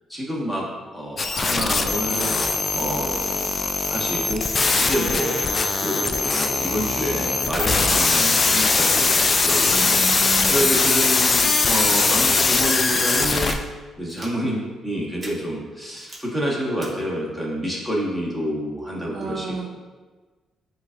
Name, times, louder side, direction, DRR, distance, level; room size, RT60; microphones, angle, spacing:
voice 1, 0.1-0.6 0.9-2.3 2.7-3.5 3.9-4.4 4.8-10.0 10.5-13.6 14.0-19.7, equal, 10° left, -4 dB, 1.4 m, -28 dB
sound 1, 1.2-13.5, left 3 dB, 35° left, 0.3 m, -21 dB
voice 2, 9.7-10.7 19.1-19.7, right 4 dB, 60° right, 1 dB, 0.5 m, -31 dB
sound 2, 12.4-12.6 13.2-13.5 14.1-14.3 15.2-15.3 16.0-16.2 16.8-16.9, right 1 dB, 20° right, 1.2 m, -39 dB
7.7 x 2.7 x 2.5 m, 1.3 s
cardioid pair, 90°, 0 cm